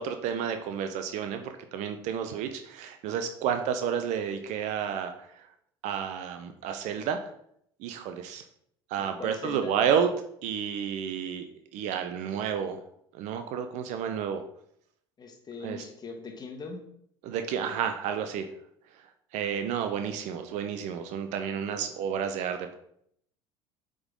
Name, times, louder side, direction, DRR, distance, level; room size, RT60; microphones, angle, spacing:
voice 1, 0.0-5.1 5.8-7.2 7.8-8.4 8.9-10.1 10.4-11.5 11.7-12.8 13.1-14.4 15.6-15.8 17.2-18.5 19.3-22.8, right 8 dB, 55° right, 7 dB, 0.6 m, -30 dB
voice 2, 9.0-9.7 15.2-16.8, left 4 dB, 30° left, 4 dB, 1.3 m, -41 dB
7.9 x 3.8 x 3.6 m, 0.70 s
figure-of-eight pair, 65°, 14 cm